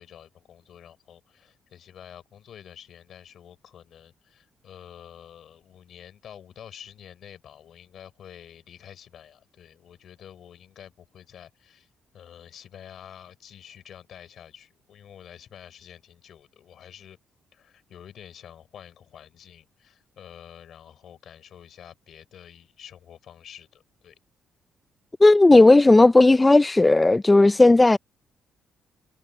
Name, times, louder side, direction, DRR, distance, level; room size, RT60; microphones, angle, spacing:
voice 1, 0.0-11.9 12.1-17.2 17.5-24.2, left 9 dB, 65° left, 6.3 m, -48 dB
voice 2, 25.2-28.0, left 2 dB, 15° left, 0.4 m, -14 dB
cardioid pair, 90°, 0 cm